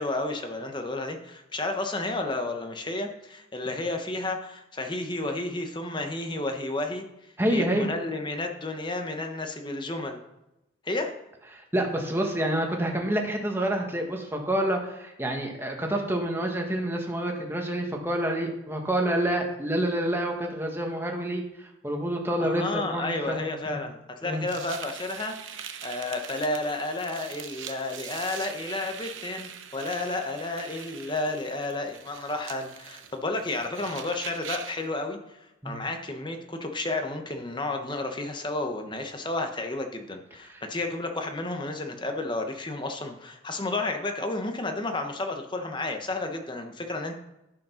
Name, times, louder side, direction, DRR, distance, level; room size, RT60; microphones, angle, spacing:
voice 1, 0.0-7.0 7.5-10.2 10.8-11.1 22.4-47.2, left 2 dB, 25° left, 4 dB, 1.1 m, -32 dB
voice 2, 7.4-7.9 11.5-23.8 24.2-24.4 35.6-35.8 40.5-40.6, right 1 dB, 10° right, 1 dB, 1.5 m, -28 dB
sound 1, 24.5-34.9, right 9 dB, 85° right, 0.9 m, -42 dB
11.5 x 5.4 x 5.7 m, 0.91 s
head